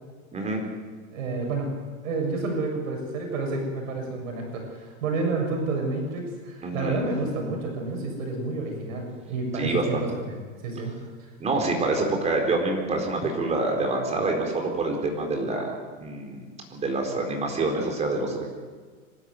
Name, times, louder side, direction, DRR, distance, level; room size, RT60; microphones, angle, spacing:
voice 1, 0.3-0.6 6.6-7.0 9.5-10.0 11.4-15.7 16.0-16.4 16.7-18.5, right 2 dB, 15° right, 2 dB, 4.2 m, -26 dB
voice 2, 1.1-1.7 2.0-10.9, right 3 dB, 75° right, 1 dB, 6.9 m, -30 dB
26.0 x 12.0 x 9.4 m, 1.5 s
supercardioid pair, 150°, 40 cm